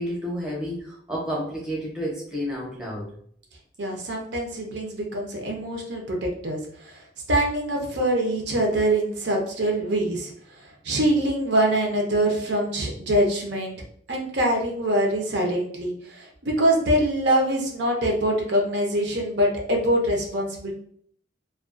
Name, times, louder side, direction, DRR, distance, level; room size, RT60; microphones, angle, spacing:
voice 1, 0.0-3.1, equal, 5° right, -5 dB, 0.6 m, -30 dB
voice 2, 3.8-6.6 6.8-10.3 10.8-13.7 14.1-20.7, right 1 dB, 70° right, 0 dB, 0.6 m, -24 dB
2.3 x 2.2 x 2.4 m, 0.62 s
head